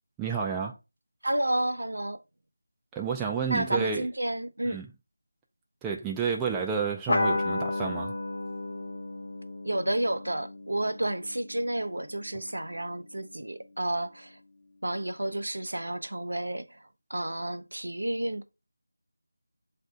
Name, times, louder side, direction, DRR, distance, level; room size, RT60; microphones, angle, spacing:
voice 1, 0.2-0.7 2.9-4.1 4.6-4.9 5.8-8.1, right 6 dB, 5° right, 0.4 m, -30 dB
voice 2, 1.2-2.2 3.5-4.8 9.6-14.4 14.8-16.8 17.1-18.4, right 1 dB, 85° right, 0.5 m, -31 dB
sound 1, 7.1-12.0, left 2 dB, 60° left, 0.7 m, -32 dB
7.2 x 2.6 x 2.4 m
figure-of-eight pair, 170°, 0 cm